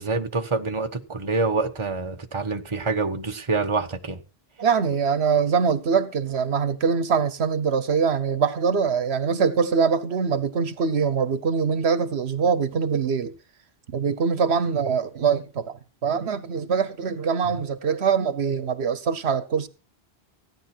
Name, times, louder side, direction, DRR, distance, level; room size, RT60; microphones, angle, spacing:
voice 1, 0.0-4.2 17.5-17.6, right 3 dB, 30° right, 1.2 m, -26 dB
voice 2, 4.6-13.3 13.9-19.7, right 6 dB, 80° right, 1.2 m, -23 dB
16.5 x 10.0 x 4.5 m
omnidirectional pair, 1.1 m